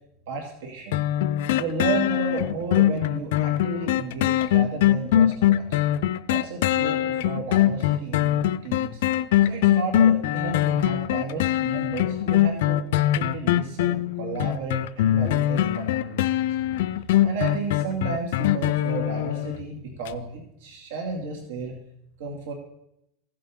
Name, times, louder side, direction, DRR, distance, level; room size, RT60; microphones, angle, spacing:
voice 1, 0.3-1.0 1.6-5.8 6.3-8.3 8.6-9.1 9.5-16.3 17.2-21.7 22.2-22.5, right 4 dB, 80° right, 1 dB, 2.3 m, -33 dB
sound 1, 0.9-19.6 20.1-20.2, left 12 dB, 75° left, 0.5 m, -22 dB
15.5 x 7.7 x 3.7 m, 0.77 s
supercardioid pair, 150°, 0 cm